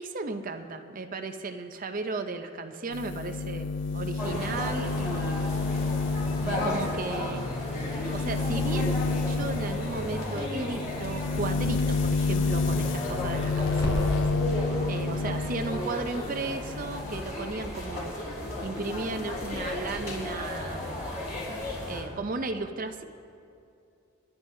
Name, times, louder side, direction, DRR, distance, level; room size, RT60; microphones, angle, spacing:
voice 1, 0.0-5.7 6.4-7.4 8.1-14.2 14.9-18.3 18.6-21.0 21.9-23.0, right 3 dB, 40° right, 7 dB, 0.6 m, -35 dB
sound 1, 2.9-15.9 16.2-17.2, left 3 dB, 55° left, 0.4 m, -30 dB
sound 2, 4.2-22.0, left 1 dB, 35° left, 4.0 m, -34 dB
Crackle, 9.2-14.5, equal, 70° left, 3.2 m, -40 dB
30.0 x 11.0 x 2.7 m, 2.6 s
head